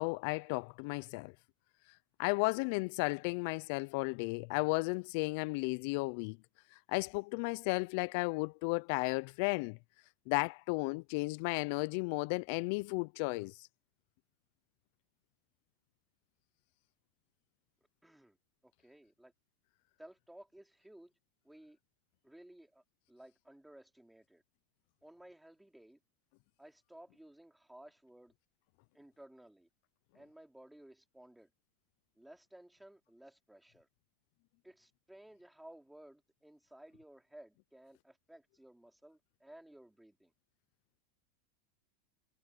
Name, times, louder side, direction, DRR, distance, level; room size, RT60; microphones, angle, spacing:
voice 1, 0.0-1.3 2.2-6.4 6.7-9.8 10.3-13.7, left 28 dB, 60° left, 0.5 m, -34 dB
voice 2, 18.0-18.4 18.6-19.3 20.0-21.1 21.4-21.8 22.2-24.4 25.0-26.0 26.6-28.3 28.9-29.7 30.1-31.5 32.2-33.9 34.6-40.3, right 1 dB, 5° right, 4.1 m, -57 dB
hypercardioid pair, 100°, 0 cm